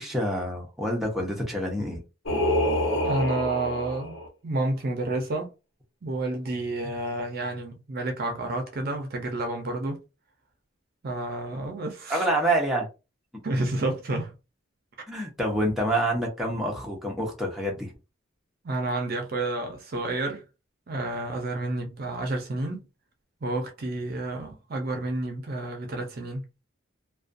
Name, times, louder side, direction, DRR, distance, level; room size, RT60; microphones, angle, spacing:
voice 1, 0.0-2.0 12.1-12.9 15.1-17.9, right 1 dB, ahead, 0.7 m, -27 dB
Singing, 2.3-4.3, left 1 dB, 85° left, 0.9 m, -26 dB
voice 2, 3.0-5.5 6.0-10.0 11.0-12.3 13.4-14.3 18.6-20.4 20.9-22.8 23.4-26.4, right 2 dB, 50° right, 0.5 m, -30 dB
2.4 x 2.2 x 2.5 m
head